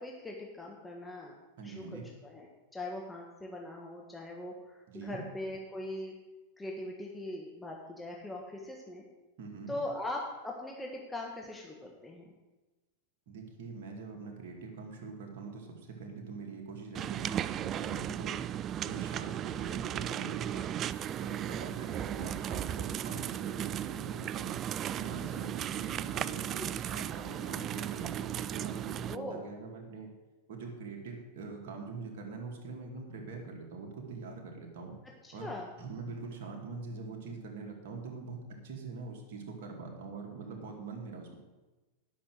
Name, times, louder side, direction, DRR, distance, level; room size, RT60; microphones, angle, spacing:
voice 1, 0.0-1.4 1.6-6.1 6.6-9.1 9.7-12.3 26.5-26.7 29.1-29.4 35.2-35.7, left 1 dB, 10° left, -1 dB, 1.6 m, -41 dB
voice 2, 1.6-2.1 4.9-5.2 9.4-9.8 13.3-18.4 18.8-20.8 21.2-24.5 24.9-30.1 30.5-35.0 35.3-35.5 35.8-41.4, right 4 dB, 60° right, 0 dB, 2.4 m, -43 dB
sound 1, 16.9-29.2, right 10 dB, 35° right, 0.3 m, -36 dB
10.0 x 6.1 x 7.8 m, 1.1 s
hypercardioid pair, 95°, 0 cm